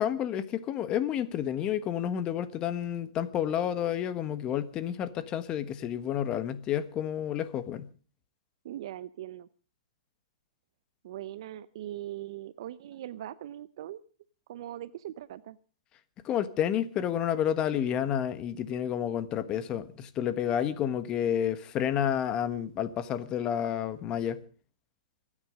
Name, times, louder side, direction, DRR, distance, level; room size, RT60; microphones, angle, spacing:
voice 1, 0.0-7.9 16.2-24.4, left 10 dB, 25° left, 1.4 m, -30 dB
voice 2, 8.6-9.5 11.0-14.0 14.5-15.6, right 12 dB, 55° right, 0.7 m, -40 dB
26.0 x 9.9 x 5.1 m
hypercardioid pair, 135°, 3 cm